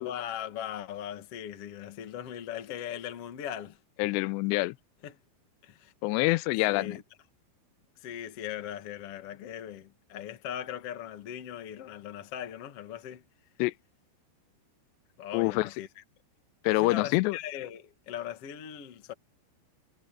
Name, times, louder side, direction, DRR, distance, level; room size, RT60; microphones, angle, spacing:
voice 1, 0.0-3.8 5.0-5.2 5.6-5.9 6.7-7.0 8.0-13.2 15.2-16.0 16.6-19.1, left 10 dB, 60° left, 1.5 m, -39 dB
voice 2, 4.0-4.8 6.0-7.0 13.6-13.7 15.3-15.7 16.6-17.4, left 20 dB, 85° left, 2.5 m, -26 dB
omnidirectional pair, 5.5 m